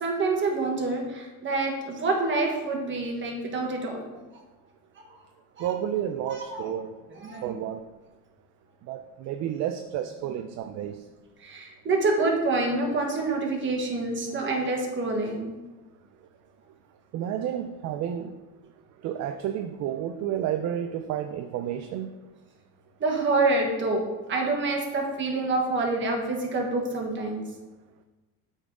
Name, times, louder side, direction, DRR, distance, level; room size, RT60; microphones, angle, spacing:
voice 1, 0.0-4.2 5.6-5.7 6.2-6.7 7.2-7.6 11.4-15.5 23.0-24.0 24.3-27.4, right 3 dB, 35° right, 1 dB, 1.4 m, -27 dB
voice 2, 5.6-7.0 7.4-7.8 8.9-11.0 17.1-18.4 19.0-22.2, right 10 dB, 55° right, 8 dB, 0.4 m, -31 dB
8.3 x 3.9 x 3.7 m, 1.2 s
cardioid pair, 140°, 32 cm